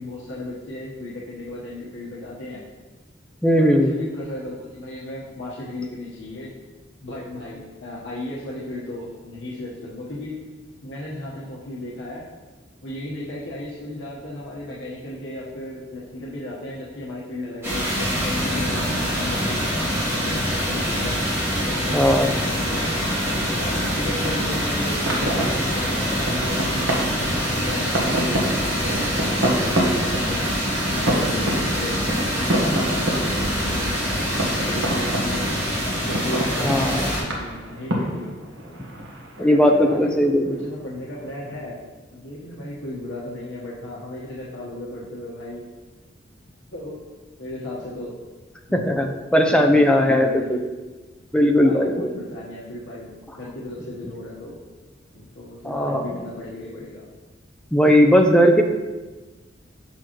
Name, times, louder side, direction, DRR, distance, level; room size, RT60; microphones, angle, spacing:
voice 1, 0.0-2.6 3.6-6.5 7.0-10.4 10.8-12.2 12.8-19.6 20.1-21.1 21.6-23.0 23.4-30.6 30.9-35.6 36.1-38.3 39.4-40.1 40.5-41.8 42.1-45.6 46.7-47.0 47.4-48.2 48.7-49.1 49.4-50.6 51.5-54.6 55.1-57.0, left 1 dB, 85° left, -6 dB, 1.2 m, -35 dB
voice 2, 3.4-3.9 21.9-22.3 36.6-37.1 39.4-40.6 48.7-50.7 51.3-52.2 55.6-56.1 57.7-58.6, equal, 5° left, 3 dB, 0.5 m, -18 dB
sound 1, 17.6-37.2, equal, 15° right, 1.7 m, -25 dB
sound 2, 22.6-41.6, right 1 dB, 85° right, 1.3 m, -29 dB
7.0 x 6.1 x 3.0 m, 1.2 s
head